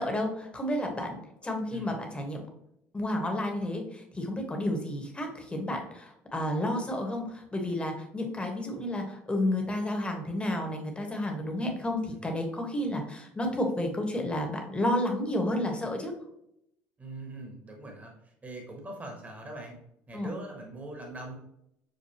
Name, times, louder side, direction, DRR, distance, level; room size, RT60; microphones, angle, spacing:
voice 1, 0.0-2.4 2.9-16.1 20.1-20.3, left 1 dB, 15° left, 2 dB, 1.1 m, -31 dB
voice 2, 17.0-19.8 20.1-21.3, right 2 dB, 20° right, 1 dB, 1.1 m, -42 dB
6.5 x 2.2 x 2.8 m, 0.76 s
supercardioid pair, 85°, 7 cm